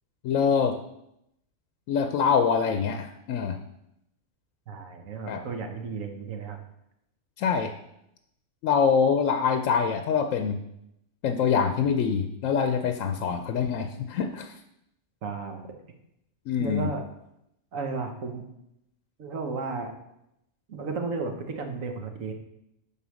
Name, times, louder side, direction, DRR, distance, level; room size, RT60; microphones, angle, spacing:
voice 1, 0.2-0.8 1.9-3.6 5.3-5.4 7.4-7.7 8.6-10.6 11.2-14.5 16.5-16.9, left 6 dB, 85° left, 7 dB, 1.0 m, -25 dB
voice 2, 4.7-6.6 15.2-15.6 16.6-17.0 17.7-18.5 19.2-19.9 20.7-22.3, right 4 dB, 85° right, 4 dB, 1.5 m, -33 dB
10.0 x 4.0 x 6.3 m, 0.82 s
omnidirectional pair, 1.3 m